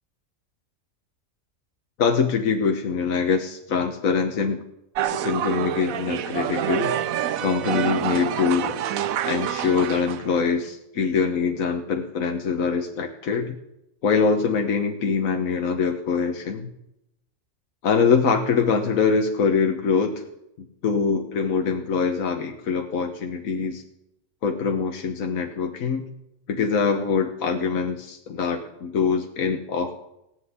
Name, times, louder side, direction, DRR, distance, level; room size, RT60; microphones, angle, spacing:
voice 1, 2.0-4.7 5.1-6.9 7.4-8.8 9.2-13.6 14.0-16.7 17.8-20.2 20.6-23.8 24.4-26.0 26.5-30.0, left 5 dB, 80° left, 4 dB, 1.6 m, -24 dB
sound 1, 4.9-10.3, right 10 dB, 90° right, 1.2 m, -27 dB
18.0 x 8.0 x 9.6 m, 0.84 s
omnidirectional pair, 1.4 m